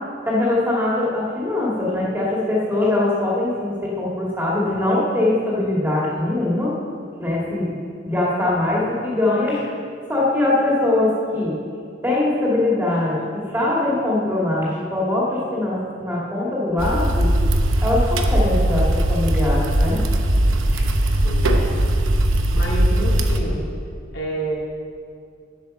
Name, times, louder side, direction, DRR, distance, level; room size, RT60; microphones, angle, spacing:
voice 1, 0.3-6.7 7.2-9.6 10.1-11.6 12.0-17.3 17.8-20.0 20.7-20.9, left 2 dB, 10° right, -6 dB, 2.2 m, -22 dB
sound 1, 16.8-23.4, right 1 dB, 90° right, 0.9 m, -19 dB
voice 2, 21.0-22.0 22.5-23.6 24.1-24.6, right 1 dB, 70° left, -5 dB, 3.1 m, -29 dB
10.5 x 8.4 x 6.5 m, 2.3 s
head